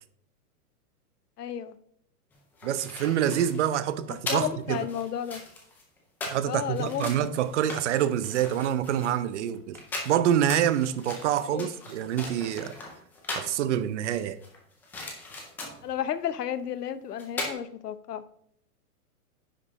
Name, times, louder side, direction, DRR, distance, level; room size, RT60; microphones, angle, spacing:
voice 1, 1.4-1.8 4.3-5.4 6.4-7.1 11.4-11.7 15.8-18.2, left 9 dB, 85° left, 0.9 m, -32 dB
sound 1, 2.3-13.6 14.0-15.9 16.9-17.0 17.2-17.5, left 2 dB, 5° left, 0.4 m, -39 dB
voice 2, 2.6-4.8 6.3-9.8 10.0-12.8 13.4-14.4, right 10 dB, 50° right, 0.8 m, -26 dB
10.0 x 5.3 x 4.1 m
hypercardioid pair, 145°, 46 cm